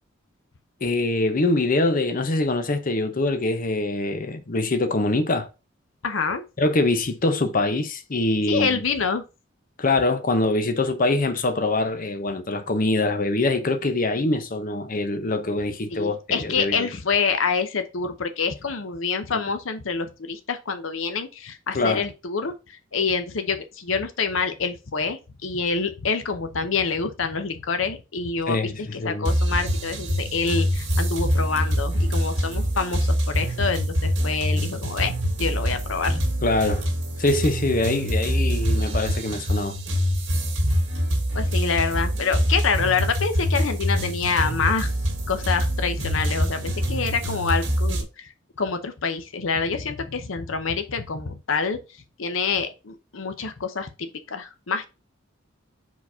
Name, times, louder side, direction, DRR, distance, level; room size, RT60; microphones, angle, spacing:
voice 1, 0.8-5.5 6.6-8.8 9.8-16.9 21.7-22.0 28.5-29.3 36.1-36.9 37.2-39.8, left 2 dB, 45° left, 0.8 m, -24 dB
voice 2, 6.0-6.4 8.5-9.2 15.9-22.6 22.9-35.1 35.4-36.2 41.3-44.9 45.3-48.3 48.6-51.8 52.2-54.9, left 5 dB, 80° left, 0.8 m, -26 dB
sound 1, 29.3-48.0, equal, 65° right, 1.9 m, -25 dB
4.8 x 4.0 x 5.5 m
head